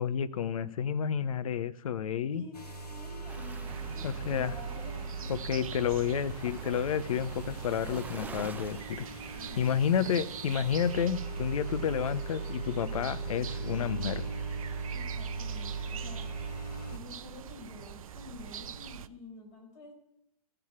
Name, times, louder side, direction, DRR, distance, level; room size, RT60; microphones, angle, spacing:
voice 1, 0.0-2.4 4.0-4.5 5.3-9.1 9.6-14.2, left 8 dB, 60° left, 15 dB, 0.6 m, -30 dB
voice 2, 2.3-5.7 9.3-9.7 14.9-16.3 16.9-19.9, left 3 dB, 45° left, 0 dB, 4.7 m, -49 dB
sound 1, 2.5-17.0, right 4 dB, 80° left, 1.7 m, -39 dB
Waves surf, 3.3-9.7, right 4 dB, 10° right, 0.5 m, -48 dB
sound 2, 3.7-19.1, right 9 dB, 60° right, 0.5 m, -45 dB
15.0 x 6.7 x 5.9 m, 0.79 s
figure-of-eight pair, 110°, 20 cm